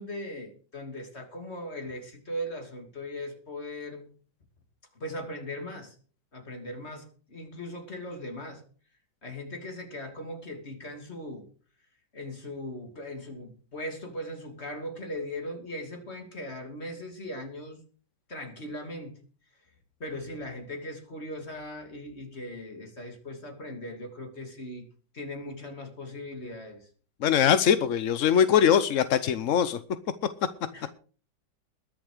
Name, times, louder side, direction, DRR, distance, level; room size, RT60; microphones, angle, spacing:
voice 1, 0.0-4.1 4.9-6.0 6.3-8.6 9.2-11.5 12.1-17.8 18.3-19.2 20.0-24.9 25.1-26.9 30.7-30.9, left 1 dB, 35° left, 2.9 m, -39 dB
voice 2, 27.2-29.8, left 8 dB, 60° left, 0.8 m, -22 dB
21.5 x 7.3 x 5.0 m
omnidirectional pair, 2.1 m